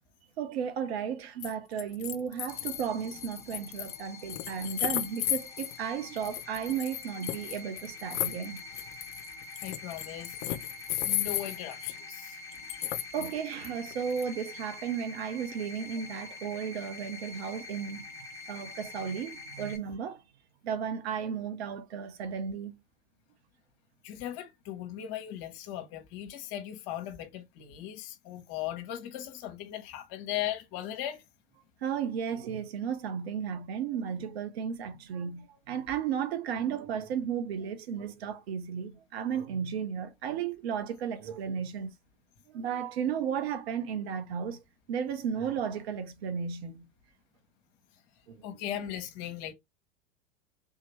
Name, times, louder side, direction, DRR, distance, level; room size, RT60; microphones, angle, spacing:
voice 1, 0.4-8.6 13.1-18.0 18.5-20.2 20.6-22.7 31.8-41.9 42.5-44.6 44.9-46.9 48.3-48.4, right 7 dB, 65° right, 0.9 m, -34 dB
sound 1, 1.4-1.5 1.8-5.8 6.2-12.0 12.5-13.3 13.6-14.2, left 13 dB, 65° left, 0.6 m, -34 dB
sound 2, 2.5-19.8, left 3 dB, 10° left, 1.1 m, -46 dB
voice 2, 9.6-10.4 11.0-12.4 24.0-31.2 48.4-49.5, left 11 dB, 50° left, 1.0 m, -38 dB
3.6 x 2.8 x 3.0 m
hypercardioid pair, 95°, 34 cm